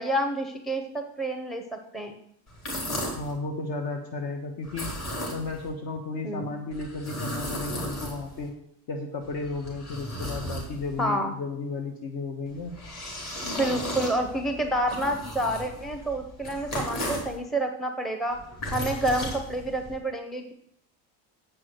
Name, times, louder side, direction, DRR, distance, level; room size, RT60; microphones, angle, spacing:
voice 1, 0.0-1.6 1.9-2.2 6.2-6.5 11.0-11.3 13.4-18.4 18.7-20.5, right 1 dB, ahead, 5 dB, 0.6 m, -28 dB
sound 1, 2.5-3.3 4.6-5.7 6.7-8.5 9.2-11.1 12.5-17.4 18.3-20.0, equal, 35° left, 3.6 m, -35 dB
voice 2, 3.2-4.9 5.3-8.5 8.9-12.7 13.4-13.9, left 3 dB, 50° left, 3 dB, 1.3 m, -34 dB
8.0 x 6.2 x 7.7 m, 0.72 s
cardioid pair, 155°, 45 cm